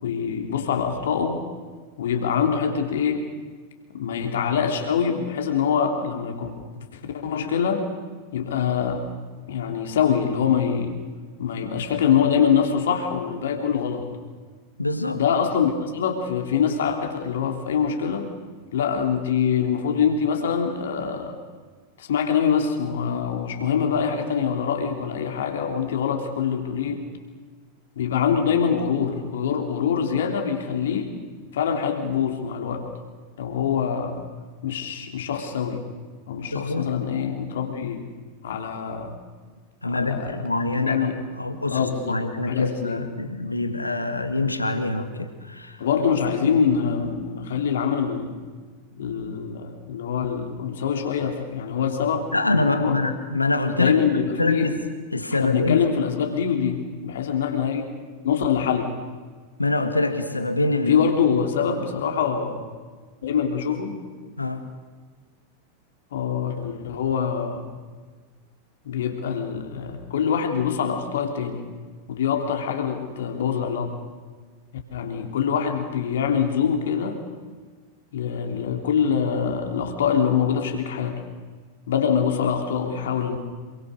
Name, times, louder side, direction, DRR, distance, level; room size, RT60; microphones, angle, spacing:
voice 1, 0.0-1.4 2.0-3.3 3.9-6.5 7.1-7.9 8.3-9.1 9.5-11.0 11.4-14.1 15.1-18.3 18.7-21.4 22.0-27.0 27.9-31.1 31.5-32.9 33.4-34.2 34.6-35.8 36.3-38.1 38.4-39.1 39.9-40.3 40.7-41.2 41.7-43.0 45.8-48.3 49.0-52.3 52.5-53.0 53.7-54.8 55.4-57.9 58.2-59.0 60.9-62.6 63.2-64.0 66.1-67.7 68.8-71.6 72.1-74.0 74.9-77.2 78.1-81.2 81.9-83.4, left 7 dB, 60° left, 4 dB, 3.3 m, -24 dB
voice 2, 14.8-15.2 36.5-36.9 39.8-45.8 46.4-46.5 52.3-54.0 54.4-54.8 55.1-55.8 59.6-61.0 64.4-64.7, left 2 dB, 85° left, 8 dB, 2.0 m, -25 dB
27.5 x 23.5 x 6.7 m, 1.5 s
figure-of-eight pair, 90°, 0 cm